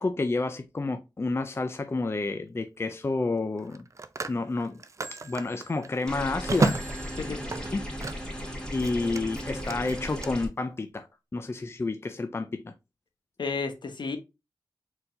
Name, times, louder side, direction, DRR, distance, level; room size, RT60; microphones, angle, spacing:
voice 1, 0.0-3.8 4.3-4.8 5.1-6.8 7.7-7.9 8.2-11.1 11.3-12.7, left 3 dB, 30° left, 0.4 m, -30 dB
Telephone, 1.4-1.6 3.6-8.4 8.7-10.3, right 3 dB, 40° right, 0.5 m, -33 dB
sound 1, 6.1-10.5, equal, 10° left, 1.8 m, -36 dB
voice 2, 13.4-14.2, left 4 dB, 70° left, 1.0 m, -32 dB
4.3 x 3.9 x 2.6 m
wide cardioid pair, 70°, 8 cm